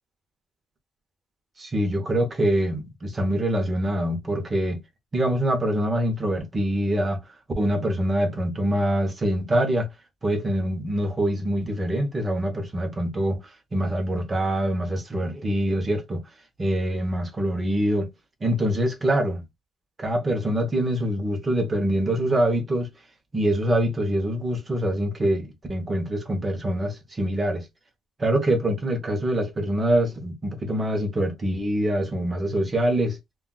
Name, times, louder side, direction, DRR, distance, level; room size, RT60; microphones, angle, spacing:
voice 1, 1.6-4.8 5.1-7.2 7.6-9.9 10.2-13.4 13.7-16.2 16.6-18.1 18.4-19.4 20.0-22.9 23.3-27.7 28.2-33.2, right 1 dB, 20° right, 0.8 m, -24 dB
2.3 x 2.2 x 3.8 m
cardioid pair, 150°, 0 cm